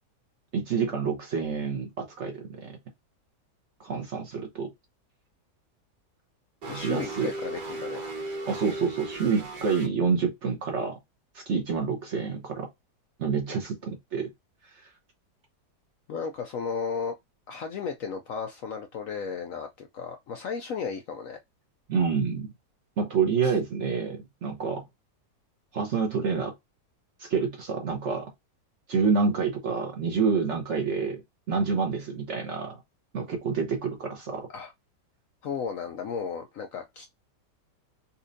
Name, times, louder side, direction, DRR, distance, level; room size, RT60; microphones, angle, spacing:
voice 1, 0.5-2.8 3.8-4.7 6.8-7.3 8.5-11.0 11.3-12.7 13.2-14.3 21.9-22.5 23.0-24.8 25.7-26.5 27.2-28.3 28.9-31.2 31.5-32.8 33.1-34.5, right 5 dB, 50° right, 1.0 m, -28 dB
sound 1, 6.6-9.9, right 2 dB, 75° right, 1.7 m, -36 dB
voice 2, 6.7-8.0 16.1-17.2 17.5-21.4 23.4-23.6 34.5-34.7 35.4-37.2, left 6 dB, 70° left, 0.8 m, -34 dB
4.2 x 2.5 x 2.6 m
omnidirectional pair, 1.8 m